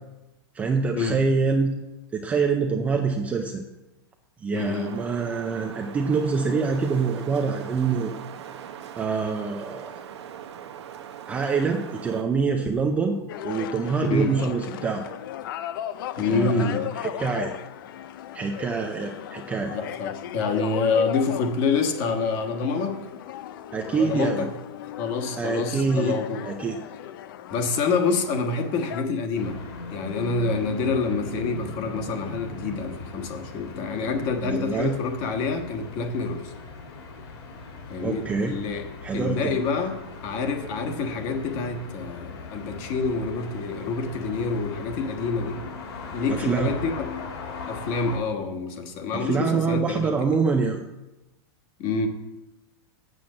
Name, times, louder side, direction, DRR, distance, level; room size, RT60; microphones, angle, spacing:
voice 1, 0.5-1.8 2.1-3.6 4.4-8.1 9.0-10.0 11.3-13.2 13.4-15.0 16.3-17.5 18.3-19.8 23.7-24.5 25.4-26.2 26.5-26.8 34.4-35.0 38.0-38.6 39.0-39.6 46.3-46.8 49.1-50.8, right 5 dB, 10° right, 3 dB, 0.5 m, -25 dB
voice 2, 4.5-4.9 14.1-14.3 16.2-16.9 19.7-23.0 23.9-24.5 25.0-26.4 27.5-29.6 29.9-36.5 37.9-38.8 39.1-40.0 40.2-45.6 46.1-47.1 47.7-50.4 51.8-52.1, left 4 dB, 30° left, 4 dB, 1.4 m, -27 dB
Wind, 4.6-12.2, right 9 dB, 90° right, 1.1 m, -40 dB
sound 1, 13.3-29.0, left 11 dB, 55° left, 0.5 m, -37 dB
sound 2, 29.3-48.2, left 3 dB, 70° left, 3.0 m, -39 dB
7.8 x 7.1 x 7.6 m, 1.0 s
supercardioid pair, 170°, 14 cm